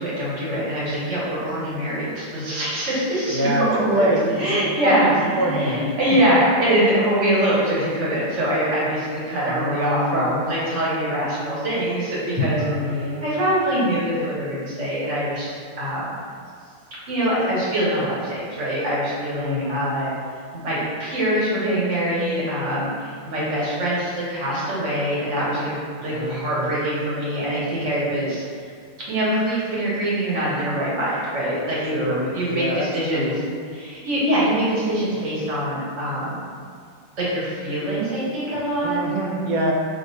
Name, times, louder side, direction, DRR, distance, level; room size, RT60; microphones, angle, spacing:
voice 1, 0.0-12.6 12.9-16.1 17.1-20.1 20.5-28.7 29.1-33.4 33.7-36.4 37.2-39.0, right 1 dB, 45° right, -8 dB, 1.4 m, -24 dB
voice 2, 3.3-6.0 9.4-10.4 12.6-13.2 19.3-19.9 26.1-26.8 31.9-32.9 33.1-33.4 38.8-39.7, right 1 dB, 80° right, -1 dB, 1.4 m, -25 dB
5.4 x 2.8 x 2.7 m, 2.1 s
omnidirectional pair, 2.0 m